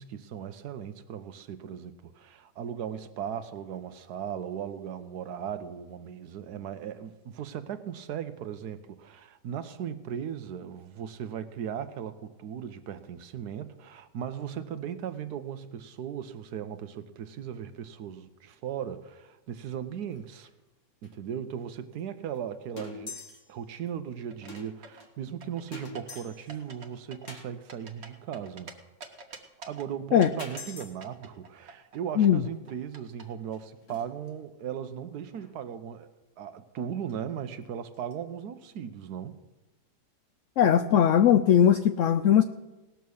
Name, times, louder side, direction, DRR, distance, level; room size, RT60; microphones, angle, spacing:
voice 1, 0.0-20.5 21.0-23.2 23.5-28.7 29.7-36.1 36.4-39.4, right 8 dB, 70° right, 11 dB, 1.2 m, -37 dB
sound 1, 19.5-19.8 20.0-20.2 20.4-20.5 21.0-21.1 22.0-22.1 22.4-22.5 22.8-23.5 23.9-24.0 24.5-25.1 25.7-26.6 27.3-27.5 29.6-29.7 30.4-30.9 32.7-32.8 33.2-34.3 35.3-35.6 37.1-37.2 37.6-37.7 37.9-38.1, left 3 dB, 45° left, 2.2 m, -44 dB
sound 2, 24.3-25.1 25.4-26.2 26.5-26.9 27.1-28.7 29.0-29.9 30.2-32.0 32.2-33.2, right 4 dB, 40° right, 1.3 m, -46 dB
voice 2, 40.6-42.4, left 9 dB, 80° left, 10 dB, 0.6 m, -20 dB
18.5 x 7.0 x 6.3 m, 1.1 s
omnidirectional pair, 1.9 m